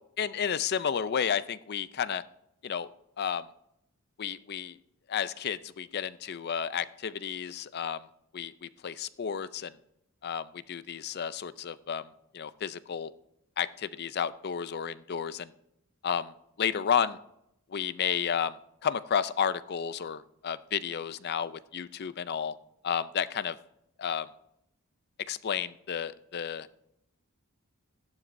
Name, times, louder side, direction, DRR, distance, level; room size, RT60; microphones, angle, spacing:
voice 1, 0.2-2.2 2.6-2.9 3.2-3.5 4.2-4.8 5.1-8.1 8.3-9.7 10.2-12.1 12.3-13.1 13.6-15.5 16.0-16.3 16.6-17.2 17.7-22.5 22.8-23.6 24.0-24.3 25.3-26.7, left 7 dB, 45° left, 15 dB, 0.4 m, -32 dB
16.0 x 11.5 x 2.6 m, 0.79 s
head